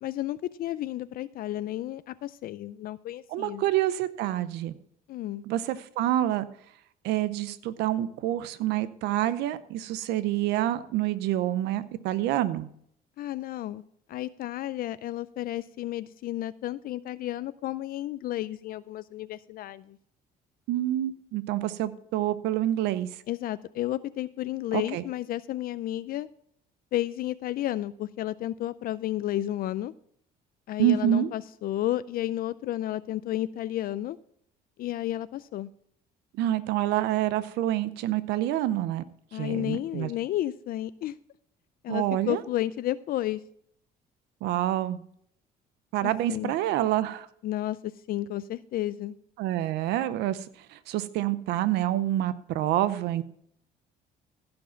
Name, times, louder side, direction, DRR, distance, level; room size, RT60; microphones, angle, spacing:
voice 1, 0.0-3.6 5.1-5.4 13.2-13.8 14.1-20.0 23.3-26.3 26.9-29.9 30.7-34.2 34.8-35.7 39.3-41.2 41.8-43.4 46.3-46.5 47.4-49.2, left 14 dB, 60° left, 15 dB, 0.4 m, -32 dB
voice 2, 3.3-4.7 5.5-6.4 7.0-12.7 20.7-23.1 24.7-25.0 30.8-31.3 36.4-39.0 39.3-40.1 41.9-42.4 44.4-45.0 45.9-47.3 49.4-53.2, right 13 dB, 85° right, 14 dB, 0.6 m, -27 dB
15.5 x 5.3 x 5.7 m, 0.67 s
cardioid pair, 110°, 17 cm